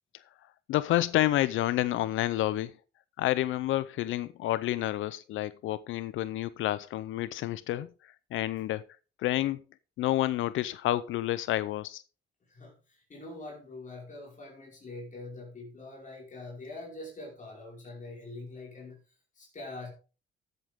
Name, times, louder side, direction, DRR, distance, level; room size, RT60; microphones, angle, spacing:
voice 1, 0.7-2.7 3.2-8.8 9.2-9.6 10.0-12.0, left 14 dB, 80° left, 0.6 m, -29 dB
voice 2, 13.1-19.0 19.4-19.9, left 2 dB, 40° left, 5.1 m, -44 dB
14.0 x 8.1 x 3.6 m
cardioid pair, 90°, 20 cm